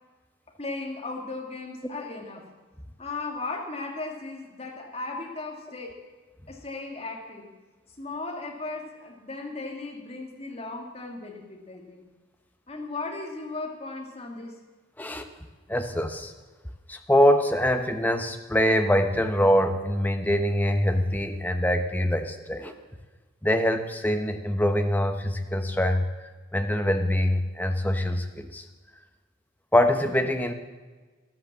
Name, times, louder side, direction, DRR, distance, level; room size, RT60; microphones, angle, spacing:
voice 1, 0.6-2.5 3.0-6.0 6.5-7.5 8.0-12.0 12.7-14.5, left 3 dB, 30° left, 1 dB, 2.1 m, -36 dB
voice 2, 15.7-16.3 16.9-22.7 23.4-26.1 26.5-28.6 29.7-30.5, equal, 10° left, 6 dB, 0.9 m, -24 dB
13.5 x 11.0 x 7.4 m, 1.3 s
head